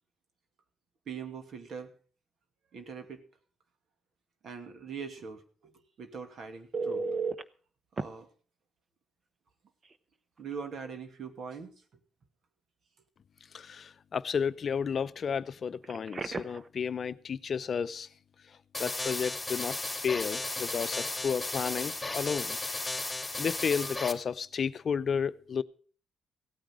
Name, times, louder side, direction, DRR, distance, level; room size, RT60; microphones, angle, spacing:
voice 1, 1.1-1.9 2.7-3.2 4.4-5.7 6.0-7.4 8.0-8.3 10.4-11.7, right 6 dB, 60° right, 2.5 m, -42 dB
Telephone, 6.7-7.4 8.0-8.1 9.8-10.0 10.4-10.5 15.8-16.7 23.8-24.0, right 4 dB, 35° right, 0.9 m, -34 dB
voice 2, 13.5-18.1 18.8-22.6 23.4-25.6, left 6 dB, 50° left, 0.7 m, -32 dB
sound 1, 18.7-24.1, left 2 dB, 10° left, 3.0 m, -35 dB
16.5 x 9.2 x 6.3 m
cardioid pair, 90°, 0 cm